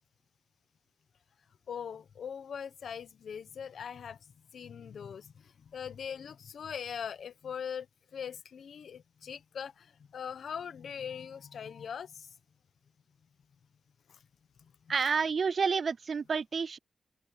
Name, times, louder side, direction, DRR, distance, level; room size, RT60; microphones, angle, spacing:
voice 1, 1.7-4.2 4.5-7.9 8.1-12.3 14.1-14.2 14.6-14.9, left 7 dB, 80° left, 1.1 m, -41 dB
voice 2, 14.9-16.8, right 5 dB, 50° right, 0.4 m, -29 dB
open air
wide cardioid pair, 160°, 0 cm